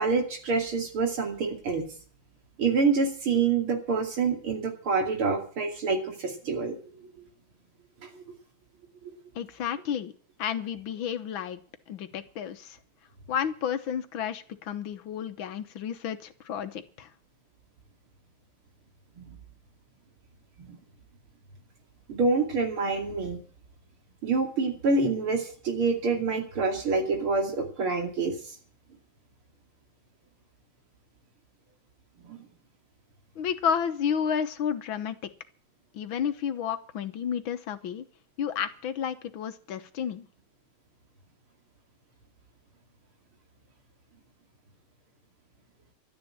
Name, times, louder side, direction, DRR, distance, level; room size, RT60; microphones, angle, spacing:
voice 1, 0.0-1.8 2.6-6.8 8.2-8.3 9.0-9.1 20.7-20.8 22.1-23.4 24.2-28.3 32.3-32.4, right 4 dB, 80° right, 4 dB, 3.5 m, -27 dB
voice 2, 9.4-10.1 10.4-11.6 11.9-12.8 13.3-17.1 33.4-35.3 35.9-38.1 38.4-40.3, left 8 dB, 70° left, 10 dB, 1.8 m, -31 dB
12.5 x 9.9 x 8.7 m, 0.44 s
omnidirectional pair, 2.3 m